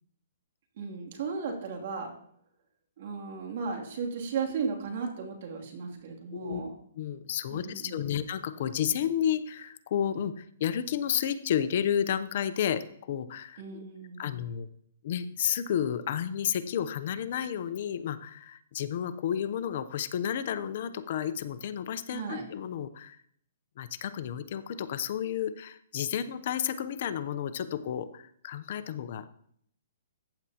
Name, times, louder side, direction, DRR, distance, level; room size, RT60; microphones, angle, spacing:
voice 1, 0.8-2.1 3.0-6.7 7.5-8.2 13.6-14.3 22.1-22.5, right 5 dB, 55° right, 2 dB, 2.7 m, -35 dB
voice 2, 6.9-13.8 14.2-14.7 15.0-23.2 23.8-29.2, left 9 dB, 50° left, 12 dB, 0.7 m, -31 dB
15.0 x 9.1 x 2.9 m, 0.67 s
hypercardioid pair, 150°, 0 cm